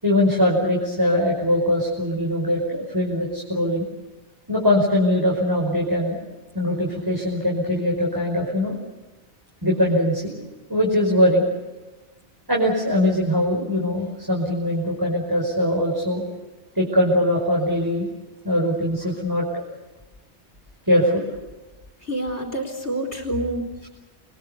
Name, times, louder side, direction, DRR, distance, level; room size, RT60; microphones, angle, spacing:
voice 1, 0.0-3.9 4.5-6.2 6.5-8.8 9.6-10.3 10.7-11.4 12.5-16.2 16.8-18.1 18.4-19.6 20.9-21.3 23.8-23.9, left 1 dB, 20° right, -3 dB, 5.4 m, -21 dB
voice 2, 22.0-23.6, right 1 dB, 70° left, 3 dB, 3.9 m, -27 dB
30.0 x 23.0 x 6.9 m, 1.1 s
omnidirectional pair, 1.2 m